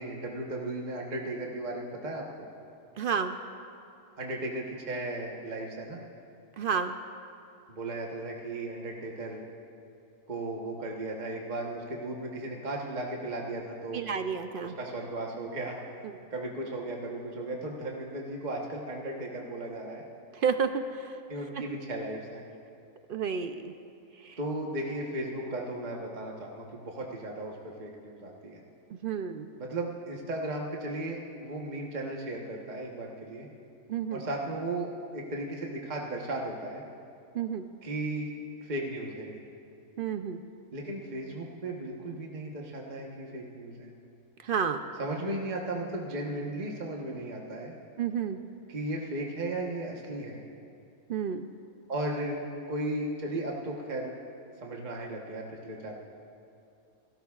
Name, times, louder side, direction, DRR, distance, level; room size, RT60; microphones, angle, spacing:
voice 1, 0.0-2.5 4.2-6.0 7.7-9.5 10.3-14.0 14.6-15.8 16.3-20.0 21.3-22.4 24.4-28.6 29.6-33.5 34.1-36.8 37.8-38.3 38.6-39.4 40.7-43.9 45.0-47.7 48.7-50.4 51.9-52.4 52.7-54.1 54.6-56.0, right 1 dB, 35° right, -1 dB, 1.2 m, -36 dB
voice 2, 3.0-3.4 6.6-6.9 13.9-14.7 20.4-20.8 23.1-23.7 29.0-29.5 33.9-34.2 37.3-37.6 40.0-40.4 44.5-44.8 48.0-48.4 51.1-51.4, right 7 dB, 70° right, 8 dB, 0.5 m, -30 dB
28.0 x 13.5 x 2.4 m, 2.7 s
omnidirectional pair, 1.4 m